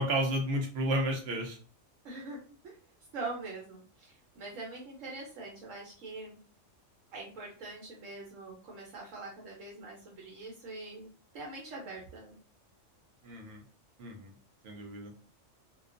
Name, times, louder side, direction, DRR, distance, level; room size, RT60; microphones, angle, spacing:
voice 1, 0.0-1.6 13.2-13.6 14.0-14.3 14.6-15.1, right 1 dB, 65° right, 2 dB, 0.7 m, -32 dB
voice 2, 2.0-2.4 2.6-2.8 3.1-6.4 7.1-12.4, right 3 dB, 80° right, -2 dB, 1.1 m, -43 dB
2.4 x 2.2 x 2.4 m, 0.40 s
omnidirectional pair, 1.3 m